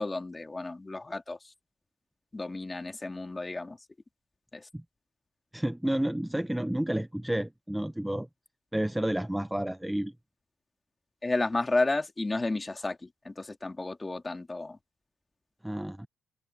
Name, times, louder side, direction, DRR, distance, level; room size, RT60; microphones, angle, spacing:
voice 1, 0.0-1.5 2.3-3.8 4.5-4.7 11.2-14.8, left 2 dB, 20° left, 2.3 m, -32 dB
voice 2, 5.5-8.3 8.7-10.1 15.6-16.1, right 1 dB, 5° right, 0.7 m, -30 dB
cardioid pair, 90°, 0 cm